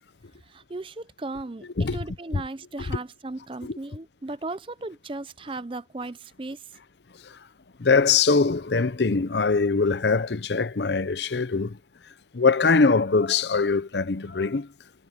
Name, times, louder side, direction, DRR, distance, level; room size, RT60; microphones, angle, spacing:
voice 1, 0.5-1.7 1.9-6.7, right 2 dB, 30° right, 0.6 m, -36 dB
voice 2, 7.8-11.8 12.3-14.7, left 4 dB, 70° left, 0.7 m, -22 dB
head